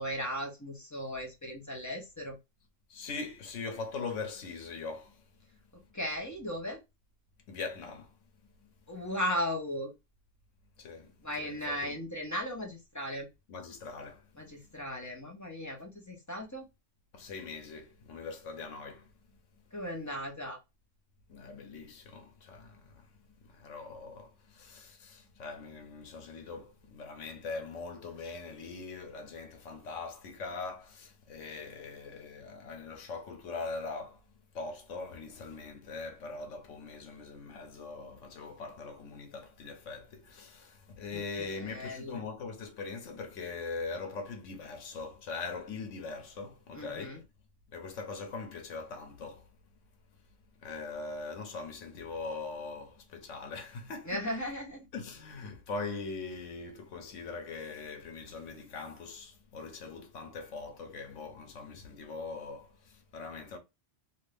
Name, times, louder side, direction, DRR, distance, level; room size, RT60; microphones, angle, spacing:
voice 1, 0.0-2.4 5.7-6.8 8.9-9.9 11.2-13.3 14.3-16.6 19.7-20.6 41.1-42.2 46.7-47.2 54.0-54.9, equal, 15° left, 0.9 m, -37 dB
voice 2, 2.9-5.2 7.5-8.1 10.8-11.1 11.4-12.0 13.5-14.2 17.1-19.1 21.3-23.1 23.5-34.2 34.5-47.2 47.7-49.4 50.6-54.2 54.9-63.6, left 4 dB, 85° left, 1.2 m, -41 dB
2.7 x 2.6 x 3.4 m
omnidirectional pair, 1.3 m